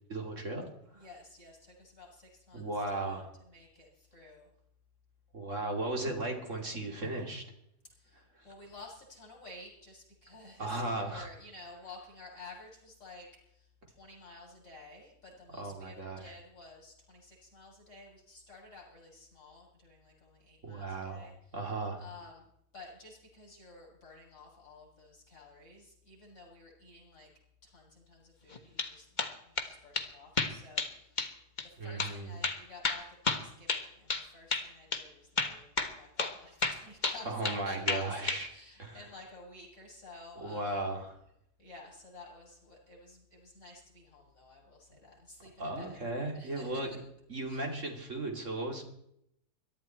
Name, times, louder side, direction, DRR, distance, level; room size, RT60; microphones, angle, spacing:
voice 1, 0.1-0.7 0.9-1.0 2.5-3.3 5.3-7.4 10.6-11.3 15.6-16.4 20.6-21.3 21.5-22.0 31.8-32.3 37.3-38.5 38.8-39.0 40.4-41.1 45.6-46.9 47.3-48.9, right 2 dB, 50° right, 2 dB, 2.9 m, -36 dB
voice 2, 0.9-3.2 3.4-4.5 7.9-21.6 22.0-22.5 22.7-27.3 27.6-31.4 31.6-40.9 41.6-46.0 46.3-47.0 47.5-47.7, left 3 dB, 50° left, -3 dB, 8.4 m, -52 dB
sound 1, 28.5-28.9 29.2-29.7 30.0-30.1 30.4-30.9 31.2-31.3 31.6-31.7 32.0-32.1 32.4-34.3 34.5-34.7 34.9-35.0 35.4-35.9 36.2-36.4 36.6-37.6 37.9-38.4, left 4 dB, 30° left, 1.4 m, -31 dB
22.5 x 12.5 x 4.5 m, 0.76 s
omnidirectional pair, 1.7 m